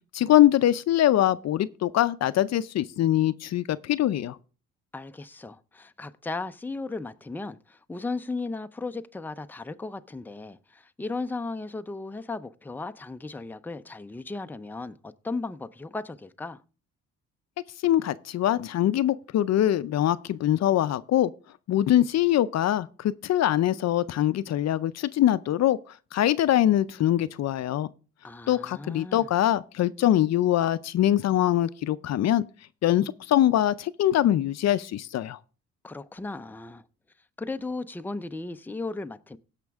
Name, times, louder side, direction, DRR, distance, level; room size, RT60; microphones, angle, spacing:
voice 1, 0.1-4.4 17.8-21.3 21.7-25.8 26.1-27.9 28.5-32.4 32.8-35.4, left 12 dB, 60° left, 0.5 m, -23 dB
voice 2, 4.9-16.6 28.2-29.3 35.8-36.8 37.4-39.4, left 3 dB, 5° left, 0.6 m, -36 dB
17.0 x 5.9 x 3.5 m
cardioid pair, 90°, 30 cm